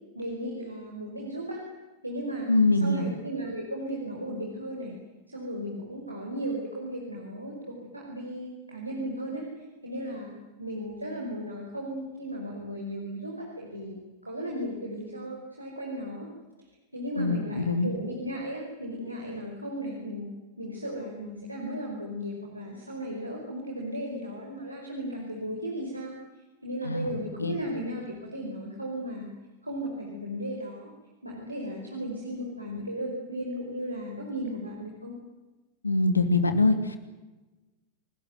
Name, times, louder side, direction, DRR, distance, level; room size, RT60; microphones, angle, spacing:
voice 1, 0.2-1.6 2.0-2.5 2.7-5.0 5.3-10.3 10.6-14.0 14.2-16.3 16.9-20.3 20.6-26.1 26.6-29.3 29.6-30.9 31.2-35.2, equal, 85° right, -1 dB, 5.2 m, -35 dB
voice 2, 2.5-3.1 17.2-17.9 26.8-27.6 35.8-37.0, left 2 dB, 80° left, 9 dB, 2.7 m, -24 dB
28.0 x 19.5 x 9.4 m, 1.2 s
figure-of-eight pair, 90°, 0 cm